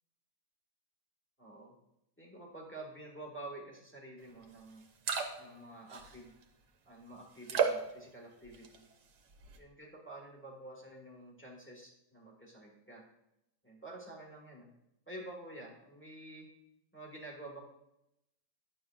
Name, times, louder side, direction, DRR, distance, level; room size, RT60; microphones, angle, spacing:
voice 1, 1.4-1.8 2.2-4.8 5.3-6.3 6.8-8.8 9.6-13.0 13.6-14.7 15.1-16.5 16.9-17.6, right 1 dB, 10° left, -3 dB, 1.3 m, -49 dB
sound 1, 4.4-4.5 4.8-5.6 5.9-6.4 7.4-7.9 8.5-8.9 9.3-9.6, right 6 dB, 75° right, 1.4 m, -33 dB
9.7 x 6.6 x 2.4 m, 0.84 s
omnidirectional pair, 1.8 m